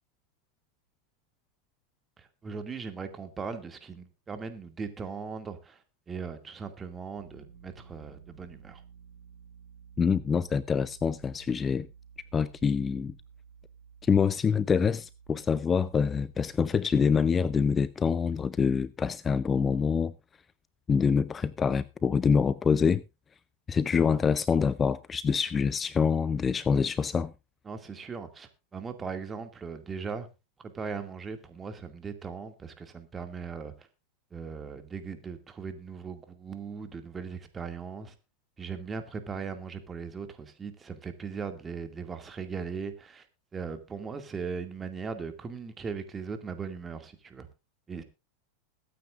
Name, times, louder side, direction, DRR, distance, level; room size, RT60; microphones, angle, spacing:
voice 1, 2.2-8.8 27.6-30.3 30.6-33.9 34.3-38.1 38.6-43.3 43.5-47.5 47.9-48.0, right 5 dB, 20° right, 2.3 m, -39 dB
sound 1, 7.1-17.6, right 7 dB, 75° right, 2.6 m, -54 dB
voice 2, 10.0-11.9 12.3-13.1 14.0-20.1 20.9-23.0 23.7-27.3, left 6 dB, 25° left, 0.5 m, -25 dB
22.0 x 9.3 x 2.5 m
hypercardioid pair, 95°, 0 cm